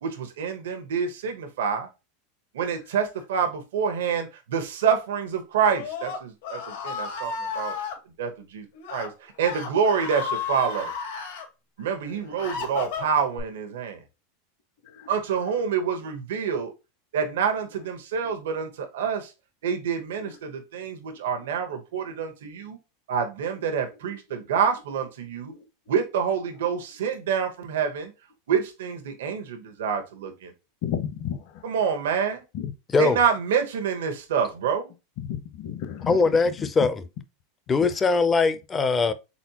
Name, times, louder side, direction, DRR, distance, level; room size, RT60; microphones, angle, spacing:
voice 1, 0.0-1.9 2.5-7.8 8.2-10.9 11.8-14.0 15.1-16.7 17.1-19.3 19.6-22.8 23.1-25.5 25.9-28.1 28.5-30.5 31.6-32.4 33.0-34.9, right 7 dB, 90° right, 1.0 m, -27 dB
Screaming, 5.6-8.0 8.7-9.1 9.4-11.5 12.0-13.4, left 5 dB, 80° left, 1.8 m, -33 dB
voice 2, 12.0-12.6 14.8-15.1 18.2-18.3 20.2-20.3 22.0-22.2 23.6-23.8 24.1-24.4 25.5-25.6 26.5-26.7 30.8-31.6 32.5-32.7 35.2-36.9 37.8-37.9, left 9 dB, 50° left, 0.8 m, -35 dB
voice 3, 36.1-37.0 37.7-39.1, left 4 dB, 15° left, 0.4 m, -21 dB
4.2 x 4.0 x 2.8 m
supercardioid pair, 160°, 0 cm